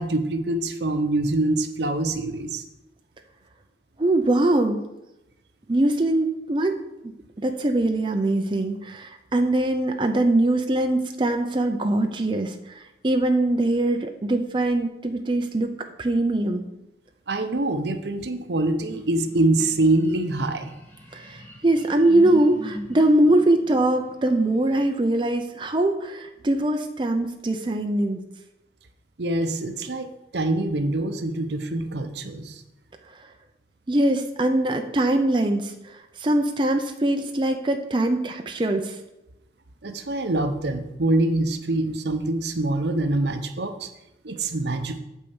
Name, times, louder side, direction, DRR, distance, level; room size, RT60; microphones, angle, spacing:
voice 1, 0.0-2.6 17.3-20.7 29.2-32.6 39.8-43.9 44.2-45.0, right 2 dB, 70° right, 8 dB, 0.8 m, -25 dB
voice 2, 4.0-4.8 5.7-6.8 7.0-15.7 16.0-16.6 21.1-28.2 33.9-39.0, right 1 dB, 25° right, 5 dB, 0.5 m, -22 dB
sound 1, 18.9-24.9, left 1 dB, 10° left, 1.5 m, -42 dB
8.5 x 4.6 x 7.1 m, 0.94 s
head